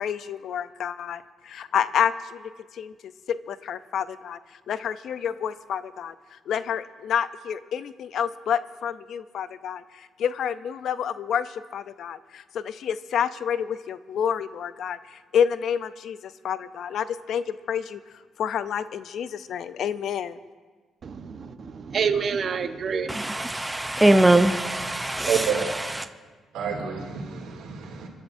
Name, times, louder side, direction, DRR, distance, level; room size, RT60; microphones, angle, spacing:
voice 1, 0.0-2.9 3.3-4.4 4.7-6.1 6.5-18.0 18.4-20.4, left 8 dB, 70° left, 0.5 m, -29 dB
voice 2, 21.0-23.4, right 6 dB, 50° right, 1.0 m, -28 dB
voice 3, 23.1-25.3, right 1 dB, 10° right, 0.6 m, -21 dB
voice 4, 25.2-25.7 26.5-28.1, right 7 dB, 90° right, 2.5 m, -28 dB
28.0 x 11.5 x 2.7 m
cardioid pair, 90°, 0 cm